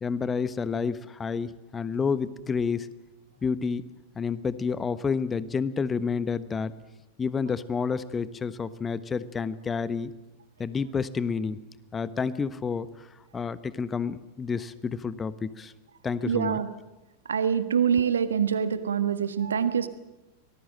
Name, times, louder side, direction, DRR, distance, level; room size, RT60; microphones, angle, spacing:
voice 1, 0.0-2.9 3.4-3.9 4.1-6.7 7.2-10.1 10.6-11.6 11.9-13.1 13.3-15.7 16.0-16.6, left 5 dB, 20° left, 16 dB, 1.1 m, -29 dB
voice 2, 16.2-16.7 17.3-19.9, right 7 dB, 70° right, 12 dB, 1.6 m, -25 dB
25.0 x 19.0 x 7.6 m, 1.0 s
figure-of-eight pair, 90°, 0 cm